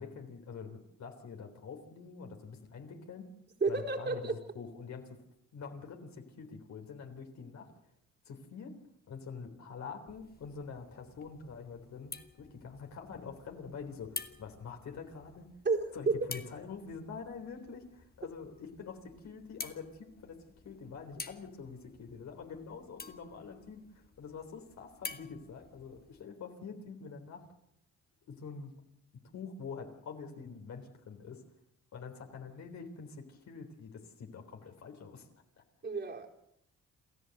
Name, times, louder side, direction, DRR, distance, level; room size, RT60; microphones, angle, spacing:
voice 1, 0.0-3.3 3.7-5.0 5.5-7.7 8.3-8.7 9.1-12.1 12.4-15.5 15.9-20.4 20.6-27.5 28.3-28.7 29.3-31.4 31.9-35.3, left 5 dB, 65° left, 3 dB, 3.7 m, -46 dB
voice 2, 3.6-4.4 15.6-16.3 35.8-36.3, right 3 dB, 35° right, 1 dB, 4.3 m, -31 dB
sound 1, 10.1-26.2, left 4 dB, 30° left, 1.8 m, -50 dB
28.5 x 13.5 x 7.8 m, 0.78 s
cardioid pair, 90°, 30 cm